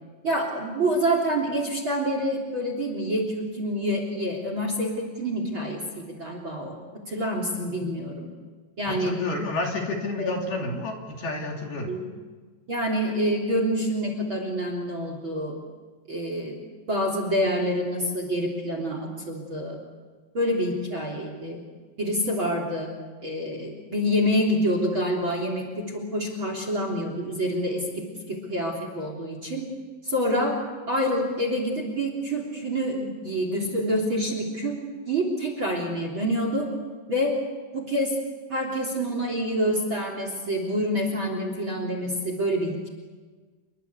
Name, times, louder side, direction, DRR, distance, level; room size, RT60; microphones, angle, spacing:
voice 1, 0.2-6.7 7.1-8.3 8.8-9.1 10.2-10.4 11.9-12.0 12.7-15.6 16.1-16.5 16.9-19.8 20.3-21.6 22.0-22.9 23.2-29.7 30.0-30.5 30.9-34.7 35.1-36.7 37.1-37.3 37.7-38.1 38.5-42.9, equal, 30° right, 4 dB, 3.3 m, -27 dB
voice 2, 8.9-11.9, left 2 dB, 55° left, 1 dB, 4.3 m, -30 dB
29.0 x 23.0 x 8.3 m, 1.4 s
omnidirectional pair, 5.9 m